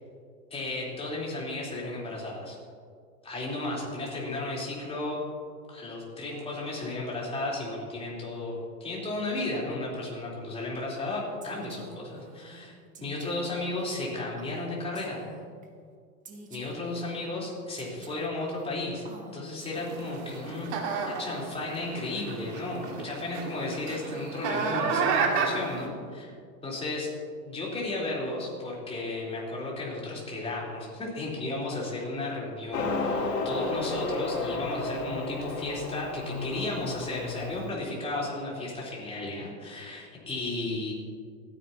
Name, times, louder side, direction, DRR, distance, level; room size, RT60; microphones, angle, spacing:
voice 1, 0.5-2.6 3.2-5.2 5.7-8.5 8.8-12.8 13.0-15.2 16.5-19.0 19.3-20.7 21.0-26.3 26.6-27.1 27.4-40.9, left 2 dB, 10° left, -5 dB, 3.8 m, -34 dB
Female speech woman speaking, 11.4-15.7 16.3-20.2, right 2 dB, 15° right, 1.3 m, -48 dB
sound 1, 19.7-25.9, right 5 dB, 40° right, 2.0 m, -31 dB
Motorcycle, 32.7-37.7, left 3 dB, 70° left, 4.4 m, -32 dB
28.5 x 10.0 x 2.9 m, 2.1 s
hypercardioid pair, 140°, 49 cm